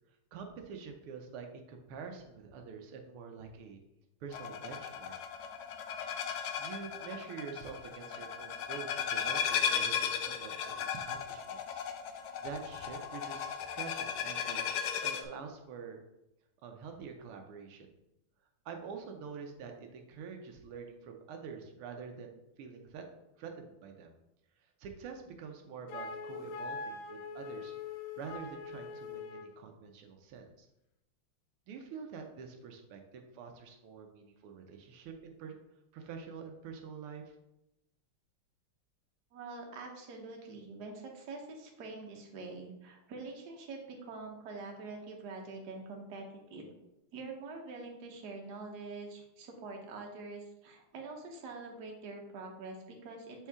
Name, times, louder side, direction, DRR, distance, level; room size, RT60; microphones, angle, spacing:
voice 1, 0.3-3.8 4.2-5.1 6.6-11.8 12.4-14.7 15.0-16.0 16.6-17.9 18.6-23.0 23.4-24.1 24.8-27.7 28.2-30.7 31.7-35.6 35.9-37.4, right 6 dB, 85° right, 4 dB, 1.6 m, -46 dB
sound 1, 4.3-15.2, left 7 dB, 85° left, 0.8 m, -36 dB
Wind instrument woodwind instrument, 25.9-29.6, left 4 dB, 70° left, 1.5 m, -42 dB
voice 2, 39.3-46.7 47.1-53.5, right 3 dB, 55° right, 1 dB, 1.4 m, -45 dB
6.3 x 4.4 x 3.5 m, 0.87 s
omnidirectional pair, 2.4 m